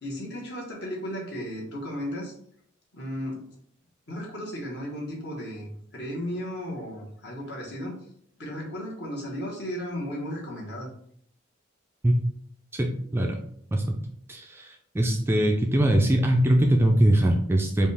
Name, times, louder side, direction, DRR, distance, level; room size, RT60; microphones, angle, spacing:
voice 1, 0.0-2.3 2.9-3.5 4.1-8.0 8.4-10.9, equal, 55° left, -3 dB, 1.4 m, -35 dB
voice 2, 12.7-13.4 13.7-14.0 14.3-17.9, right 1 dB, 10° right, 2 dB, 0.3 m, -22 dB
5.1 x 2.4 x 3.4 m, 0.65 s
head